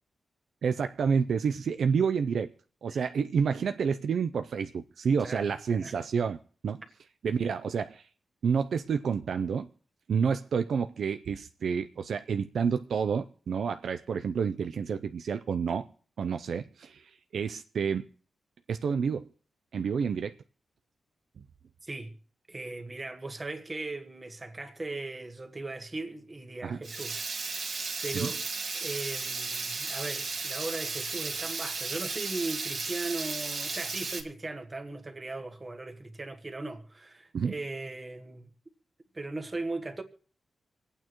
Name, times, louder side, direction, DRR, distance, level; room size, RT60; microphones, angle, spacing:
voice 1, 0.6-2.5 2.8-6.4 6.6-6.8 7.2-8.0 8.4-9.7 10.1-15.9 16.2-18.0 18.7-19.3 19.7-20.4 26.6-26.8 28.1-28.3 37.3-37.5, right 6 dB, 65° right, 0.5 m, -29 dB
voice 2, 5.2-5.5 5.8-6.0 21.8-22.1 22.5-28.4 28.7-38.5 39.1-40.0, right 2 dB, 20° right, 1.5 m, -38 dB
Water tap faucet / Liquid, 26.8-34.2, right 4 dB, 50° right, 1.9 m, -34 dB
26.5 x 8.9 x 3.0 m
wide cardioid pair, 175°, 0 cm